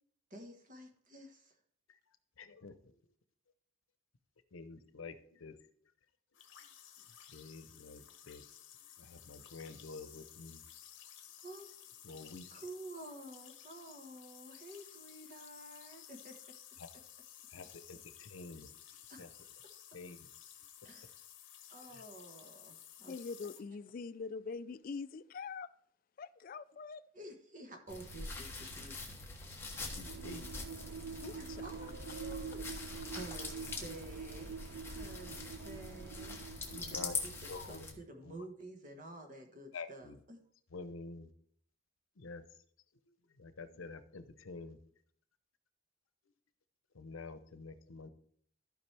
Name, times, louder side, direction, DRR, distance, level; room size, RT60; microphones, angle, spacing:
voice 1, 0.3-1.6 11.4-11.7 12.5-16.3 19.1-19.5 20.8-21.2 21.7-23.1 27.1-29.0 31.3-32.7 33.1-34.5 34.8-35.4 35.6-36.4 36.9-37.3 37.6-40.4, right 2 dB, 40° right, 1.3 m, -50 dB
voice 2, 1.9-3.1 4.5-5.6 7.0-8.4 8.8-10.6 12.0-12.6 16.8-16.9 17.5-18.7 19.2-19.3 19.9-20.3 21.9-22.0 29.9-30.5 36.6-37.2 37.5-38.3 39.7-40.2 40.7-41.3 42.2-42.4 43.1-44.8 46.9-48.1, left 3 dB, 90° left, 0.7 m, -49 dB
sound 1, 6.3-23.6, left 10 dB, 65° left, 1.0 m, -55 dB
voice 3, 23.1-25.7 26.2-27.1 31.2-31.7, left 4 dB, 45° left, 0.3 m, -44 dB
sound 2, 27.9-37.9, left 3 dB, 10° left, 1.1 m, -44 dB
sound 3, 29.7-37.5, right 5 dB, 65° right, 0.4 m, -46 dB
14.0 x 5.0 x 3.3 m
head